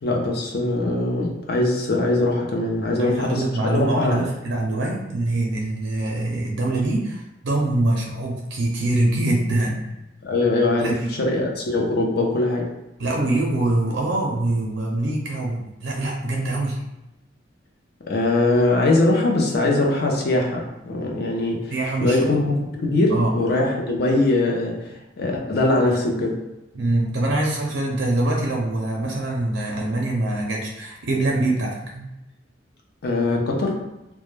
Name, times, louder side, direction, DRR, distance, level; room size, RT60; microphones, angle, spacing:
voice 1, 0.0-4.2 10.2-12.8 18.1-21.7 22.0-26.5 33.0-33.8, left 2 dB, 55° left, 0 dB, 0.5 m, -22 dB
voice 2, 3.0-9.9 10.8-11.0 13.0-16.8 21.7-22.2 23.1-23.3 26.7-32.1, right 2 dB, 70° right, -1 dB, 0.5 m, -24 dB
2.2 x 2.1 x 3.1 m, 0.95 s
head